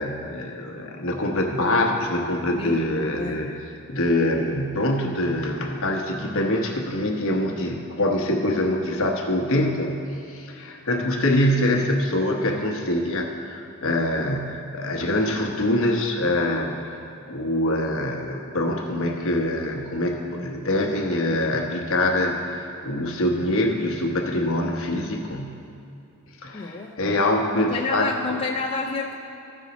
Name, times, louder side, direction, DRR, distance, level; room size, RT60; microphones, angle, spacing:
voice 1, 0.0-3.6 3.9-10.0 10.3-17.0 17.3-25.6 26.4-28.1, left 1 dB, 65° left, 1 dB, 1.0 m, -24 dB
voice 2, 2.6-3.5 20.3-20.5 26.5-27.2 27.5-29.2, left 3 dB, 25° left, 0 dB, 0.4 m, -30 dB
14.0 x 5.5 x 4.1 m, 2.6 s
head